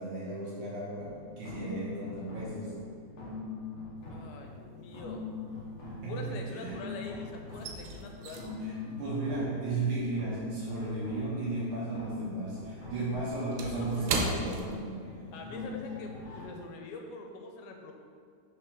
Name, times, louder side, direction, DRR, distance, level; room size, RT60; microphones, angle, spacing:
voice 1, 0.0-2.8 5.8-6.8 8.6-15.1, right 2 dB, 70° right, -6 dB, 2.0 m, -35 dB
sound 1, 0.9-16.4, left 4 dB, 65° left, 1.7 m, -42 dB
voice 2, 4.1-5.2 6.0-8.5 13.0-13.1 14.5-14.6 15.3-17.9, left 3 dB, 85° left, 2 dB, 2.5 m, -44 dB
sound 2, 4.1-4.6 4.9-6.9 7.2-11.9 12.1-15.4 15.8-15.9 16.4-16.7, right 3 dB, 90° right, 2.6 m, -38 dB
5.9 x 3.4 x 5.8 m, 2.2 s
omnidirectional pair, 4.4 m